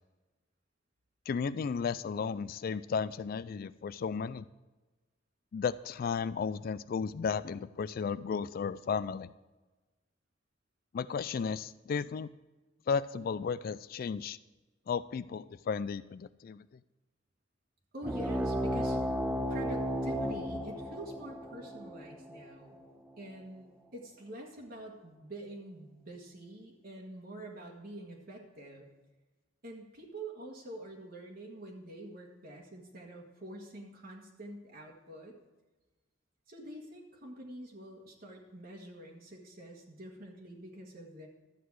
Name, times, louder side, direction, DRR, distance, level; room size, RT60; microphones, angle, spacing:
voice 1, 1.3-4.5 5.5-9.3 10.9-12.3 12.9-14.4 14.9-16.7, left 6 dB, 45° left, 16 dB, 0.3 m, -34 dB
voice 2, 17.9-19.0 19.5-22.8 23.2-28.9 29.6-35.4 36.5-41.3, right 1 dB, 50° right, 0 dB, 1.5 m, -46 dB
sound 1, 18.0-23.1, equal, 5° right, 0.6 m, -34 dB
12.0 x 8.0 x 4.7 m, 1.2 s
head